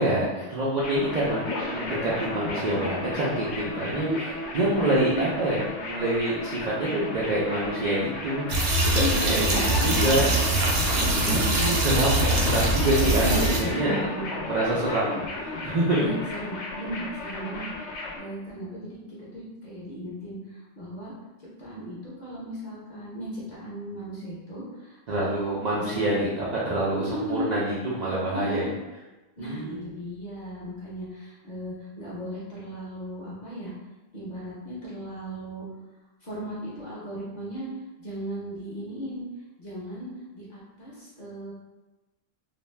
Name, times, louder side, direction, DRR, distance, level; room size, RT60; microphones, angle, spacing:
voice 1, 0.0-4.1 4.5-10.3 11.2-13.9 14.5-16.0 25.1-28.7 29.4-29.9, right 1 dB, 60° right, -7 dB, 0.4 m, -26 dB
sound 1, 0.8-18.2, left 2 dB, 70° left, 0.9 m, -33 dB
sound 2, 8.5-13.6, right 2 dB, 80° right, 1.0 m, -23 dB
voice 2, 9.0-10.4 10.9-11.6 13.0-13.4 13.7-14.2 15.9-21.1 21.6-25.4 25.7-26.1 27.1-27.5 28.3-28.7 29.4-33.7 34.1-35.6 36.2-37.7 38.0-39.2 39.6-41.5, equal, 40° left, -7 dB, 0.8 m, -36 dB
2.6 x 2.1 x 3.1 m, 1.1 s
omnidirectional pair, 1.3 m